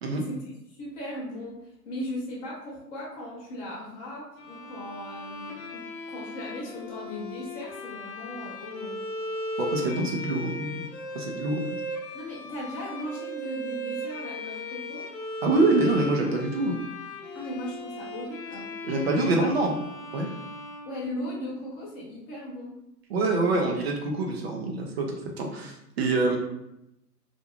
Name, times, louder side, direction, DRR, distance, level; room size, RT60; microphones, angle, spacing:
voice 1, 0.1-9.0 9.8-10.0 12.1-15.1 17.3-18.7 19.2-19.7 20.8-22.8, equal, 20° left, -6 dB, 0.7 m, -37 dB
Bowed string instrument, 4.4-21.6, left 1 dB, 85° left, 0.7 m, -37 dB
voice 2, 9.6-10.8 11.1-11.6 15.4-16.8 18.8-19.8 20.1-20.3 23.1-26.4, right 2 dB, 40° right, 1 dB, 0.4 m, -25 dB
2.5 x 2.2 x 2.9 m, 0.85 s
hypercardioid pair, 125°, 49 cm